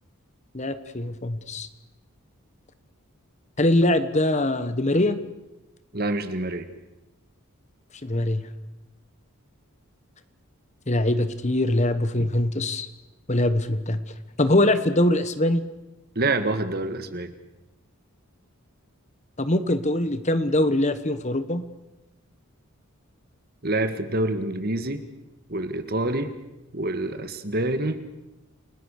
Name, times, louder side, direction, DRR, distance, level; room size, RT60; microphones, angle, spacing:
voice 1, 0.5-1.7 3.6-5.2 8.0-8.4 10.9-12.9 13.3-14.0 14.4-15.6 19.4-21.6, left 1 dB, 30° left, 11 dB, 1.3 m, -22 dB
voice 2, 5.9-6.7 16.1-17.3 23.6-25.0 25.5-26.3 26.7-28.0, right 2 dB, 45° right, 10 dB, 1.8 m, -26 dB
29.5 x 19.5 x 6.6 m, 0.99 s
head